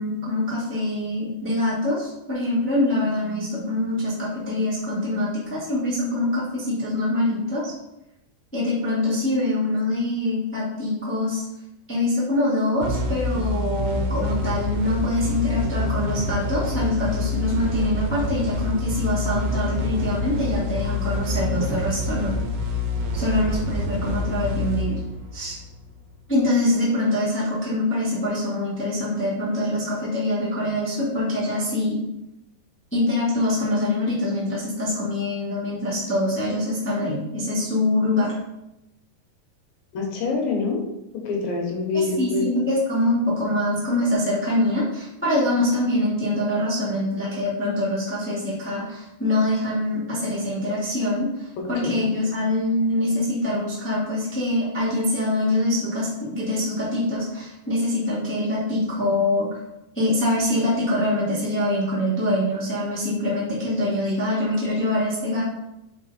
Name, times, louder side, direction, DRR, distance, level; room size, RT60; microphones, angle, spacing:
voice 1, 0.0-7.7 8.5-11.4 11.9-22.3 23.1-25.0 25.3-25.6 26.3-32.0 32.9-38.3 41.9-59.6 59.9-65.4, left 1 dB, 15° left, -8 dB, 0.5 m, -24 dB
sound 1, 12.8-26.1, left 2 dB, 85° right, 2.7 m, -27 dB
voice 2, 39.9-40.8 41.1-42.4 51.8-51.9, left 4 dB, 70° left, 0 dB, 2.9 m, -25 dB
5.4 x 5.1 x 4.2 m, 0.90 s
omnidirectional pair, 4.4 m